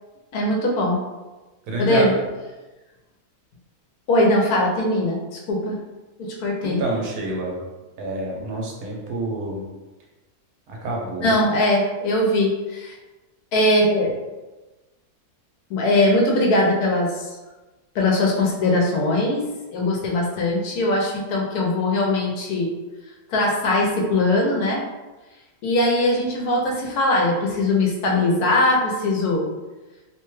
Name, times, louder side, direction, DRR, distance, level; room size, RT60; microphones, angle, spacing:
voice 1, 0.3-1.0 1.8-2.1 4.1-5.8 6.2-6.8 11.2-13.0 13.5-14.1 15.7-17.3 17.9-19.4 19.7-22.7 23.3-24.8 25.6-29.5, left 1 dB, 80° left, -1 dB, 1.2 m, -21 dB
voice 2, 1.7-2.2 6.6-7.6 8.0-9.7 10.7-11.4, right 2 dB, 80° right, -2 dB, 1.2 m, -27 dB
3.0 x 2.2 x 3.0 m, 1.1 s
omnidirectional pair, 1.6 m